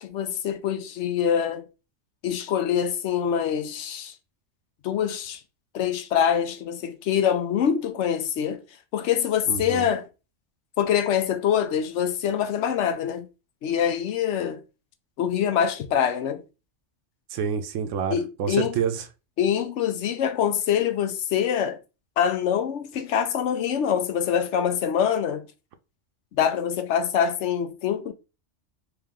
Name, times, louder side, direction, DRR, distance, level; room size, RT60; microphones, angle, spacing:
voice 1, 0.0-1.6 2.2-4.1 4.8-5.4 5.7-8.6 8.9-10.1 10.8-13.3 13.6-14.6 15.2-16.4 18.1-18.7 19.4-21.8 22.2-25.4 26.4-28.1, left 8 dB, 75° left, 0.9 m, -24 dB
voice 2, 9.5-9.9 17.3-19.0, right 7 dB, 90° right, 0.9 m, -28 dB
3.4 x 3.1 x 3.6 m
omnidirectional pair, 1.2 m